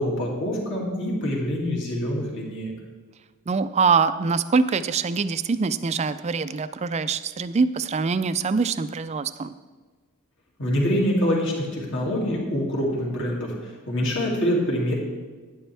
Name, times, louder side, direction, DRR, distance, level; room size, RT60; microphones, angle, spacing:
voice 1, 0.0-2.7 10.6-14.9, equal, 55° left, -3 dB, 2.4 m, -25 dB
voice 2, 3.5-9.5, right 5 dB, 30° right, 13 dB, 0.3 m, -24 dB
11.5 x 10.5 x 3.4 m, 1.4 s
head